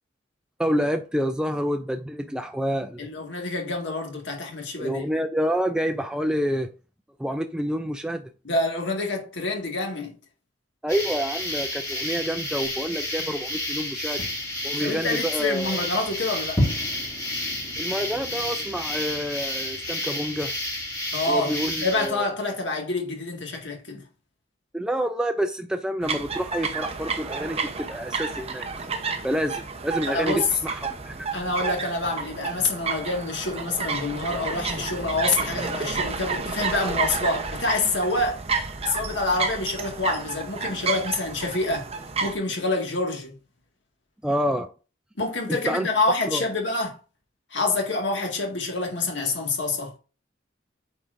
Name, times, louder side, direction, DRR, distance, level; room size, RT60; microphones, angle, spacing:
voice 1, 0.6-3.1 4.8-6.7 7.2-8.2 10.8-14.2 14.6-15.9 17.8-20.5 21.3-22.3 24.7-28.8 29.2-31.3 44.2-44.7 45.5-45.9 46.3-46.4, equal, 5° right, 0.4 m, -28 dB
voice 2, 3.0-5.0 8.4-10.1 14.8-16.6 21.1-24.0 30.1-30.4 31.3-38.4 38.8-41.9 42.2-43.4 45.2-47.0 47.5-50.0, left 2 dB, 70° left, 2.0 m, -27 dB
sound 1, 10.9-22.1, left 1 dB, 15° left, 3.2 m, -30 dB
sound 2, 26.0-42.4, right 4 dB, 35° right, 0.9 m, -31 dB
8.8 x 4.5 x 2.6 m
head